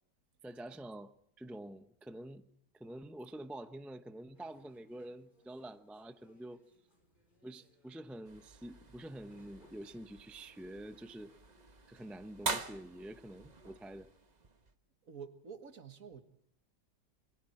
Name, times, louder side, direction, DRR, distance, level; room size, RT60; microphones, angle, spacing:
voice 1, 0.4-2.5 2.7-6.6 7.4-11.3 11.9-14.1, right 1 dB, ahead, 0.5 m, -47 dB
sound 1, 4.3-11.6, left 1 dB, 25° left, 5.8 m, -69 dB
sound 2, 8.2-14.7, right 4 dB, 30° right, 1.0 m, -45 dB
voice 2, 15.0-16.2, right 6 dB, 50° right, 2.0 m, -48 dB
28.5 x 23.0 x 4.4 m
omnidirectional pair, 1.9 m